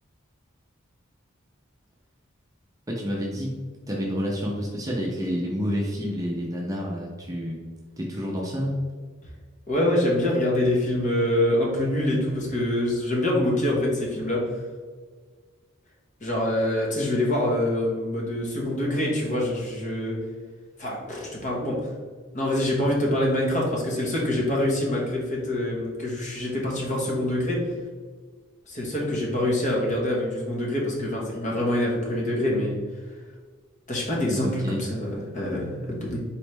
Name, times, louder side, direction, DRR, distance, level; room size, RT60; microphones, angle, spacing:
voice 1, 2.9-3.5 3.9-7.6 8.0-8.8 34.3-34.8, equal, 15° right, -2 dB, 0.6 m, -29 dB
voice 2, 9.7-14.4 16.2-20.2 20.8-21.8 22.3-27.6 28.7-32.8 33.9-36.2, left 1 dB, 35° left, -3 dB, 1.1 m, -25 dB
4.2 x 3.2 x 3.2 m, 1.5 s
head